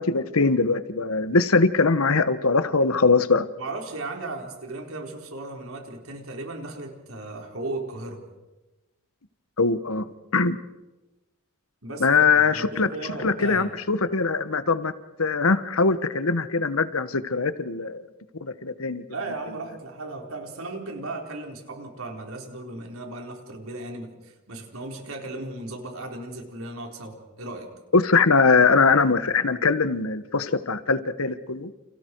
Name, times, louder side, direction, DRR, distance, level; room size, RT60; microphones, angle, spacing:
voice 1, 0.0-3.4 9.6-10.1 10.3-10.6 12.0-12.9 13.2-14.9 15.2-18.0 18.4-19.0 27.9-31.7, left 4 dB, 80° left, 12 dB, 1.3 m, -21 dB
voice 2, 3.6-8.2 11.8-13.7 19.1-27.7, right 2 dB, 75° right, 2 dB, 4.4 m, -36 dB
30.0 x 29.0 x 4.7 m, 1.1 s
head